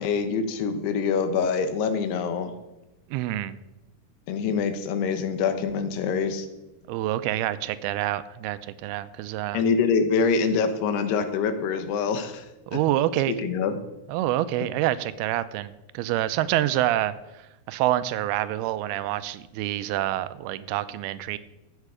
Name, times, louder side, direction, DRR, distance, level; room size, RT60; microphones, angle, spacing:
voice 1, 0.0-2.5 4.3-6.5 9.5-12.5 12.7-12.8 13.4-13.7, left 5 dB, 85° left, 9 dB, 3.1 m, -25 dB
voice 2, 3.1-3.6 6.9-9.6 12.7-13.4 14.1-17.2 17.7-21.4, right 14 dB, 80° right, 14 dB, 2.4 m, -27 dB
13.5 x 8.3 x 4.9 m, 0.97 s
omnidirectional pair, 4.6 m